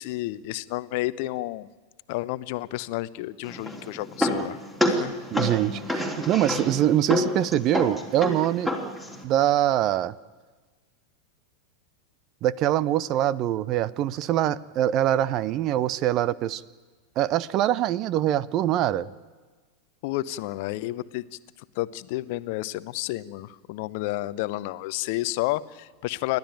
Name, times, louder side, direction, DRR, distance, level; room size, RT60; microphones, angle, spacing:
voice 1, 0.0-1.7 2.1-4.6 4.8-5.2 20.0-21.4 21.7-26.4, left 17 dB, 50° left, 16 dB, 0.8 m, -31 dB
sound 1, 3.4-9.2, left 1 dB, 5° right, 3.3 m, -29 dB
voice 2, 5.3-8.7 9.2-10.1 12.4-16.6 17.2-19.1, right 12 dB, 35° right, 20 dB, 0.6 m, -24 dB
29.5 x 12.0 x 9.1 m, 1.3 s
figure-of-eight pair, 90°, 0 cm